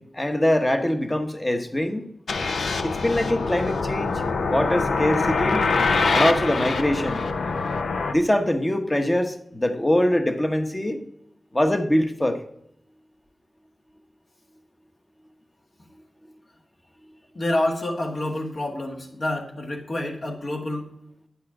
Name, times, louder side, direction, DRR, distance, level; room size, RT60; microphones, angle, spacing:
voice 1, 0.0-2.1 2.8-4.1 4.5-5.7 6.1-7.3 8.1-11.0 11.5-12.4, left 1 dB, 20° left, 6 dB, 1.0 m, -23 dB
sound 1, 2.3-8.1, left 4 dB, 85° left, 0.6 m, -24 dB
voice 2, 17.4-20.9, left 1 dB, 55° left, 2 dB, 1.7 m, -28 dB
9.9 x 5.7 x 4.8 m, 0.74 s
wide cardioid pair, 95°, 0 cm